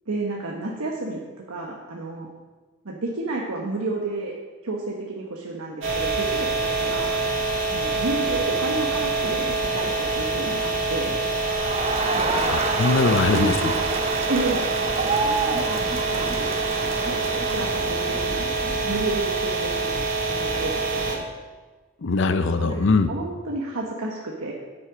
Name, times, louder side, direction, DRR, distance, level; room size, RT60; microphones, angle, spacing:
voice 1, 0.1-1.2 1.5-2.3 2.8-4.3 4.6-7.1 7.7-11.2 12.1-12.5 13.3-13.7 14.3-20.0 20.4-21.3 22.6-24.5, right 2 dB, 80° right, -2 dB, 1.1 m, -31 dB
sound 1, 5.8-21.1, right 3 dB, 55° right, 2.0 m, -26 dB
Crowd, 11.4-18.4, right 3 dB, 30° right, 0.7 m, -28 dB
voice 2, 12.5-13.7 22.0-23.1, left 3 dB, 55° left, 9 dB, 0.5 m, -21 dB
9.7 x 8.4 x 5.0 m, 1.3 s
head